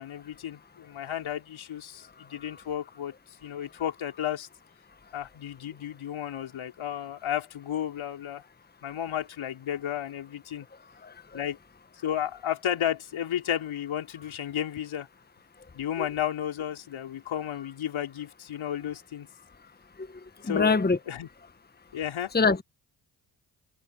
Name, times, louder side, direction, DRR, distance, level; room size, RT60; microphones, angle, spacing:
voice 1, 0.0-3.1 3.4-4.5 5.1-8.4 8.8-10.6 11.3-11.6 12.0-15.1 15.7-19.3 20.5-20.8 21.1-21.3 21.9-22.3, left 10 dB, 70° left, 4.5 m, -33 dB
voice 2, 11.0-11.4 16.0-16.1 20.0-20.1 20.4-21.0 22.3-22.6, left 4 dB, 20° left, 1.4 m, -25 dB
hypercardioid pair, 40°, 49 cm